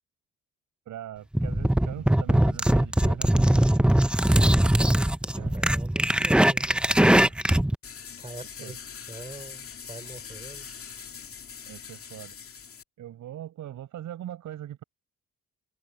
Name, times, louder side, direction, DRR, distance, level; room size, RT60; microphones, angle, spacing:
voice 1, 0.9-3.9 5.4-5.6 6.9-7.4 8.6-8.7 11.7-12.4 13.0-14.8, right 11 dB, 75° right, 8.0 m, -41 dB
sound 1, 1.3-7.8, right 1 dB, 5° right, 0.8 m, -21 dB
voice 2, 4.8-7.3 8.2-8.8 9.1-10.7, right 3 dB, 20° right, 4.7 m, -44 dB
sound 2, 7.8-12.8, left 7 dB, 45° left, 2.4 m, -42 dB
cardioid pair, 90°, 30 cm